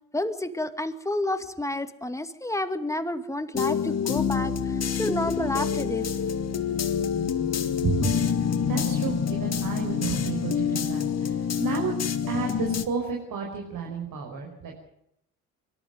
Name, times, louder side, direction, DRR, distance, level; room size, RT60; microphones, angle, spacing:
voice 1, 0.1-6.1, left 1 dB, 5° left, 9 dB, 2.3 m, -30 dB
sound 1, 3.5-12.9, left 7 dB, 35° left, 2.0 m, -27 dB
voice 2, 7.8-8.1 8.7-11.9 12.3-14.8, right 5 dB, 50° right, 1 dB, 5.6 m, -31 dB
24.0 x 13.0 x 9.6 m, 0.77 s
hypercardioid pair, 60°, 42 cm